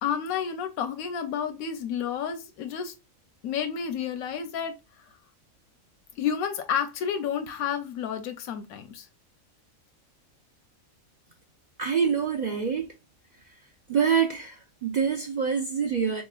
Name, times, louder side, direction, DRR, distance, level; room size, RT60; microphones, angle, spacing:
voice 1, 0.0-2.9 3.4-4.7 6.2-9.1, left 8 dB, 90° left, 1.0 m, -30 dB
voice 2, 11.8-12.9 13.9-14.6 14.8-16.2, right 6 dB, 75° right, 0.4 m, -25 dB
4.0 x 3.0 x 2.2 m
omnidirectional pair, 1.5 m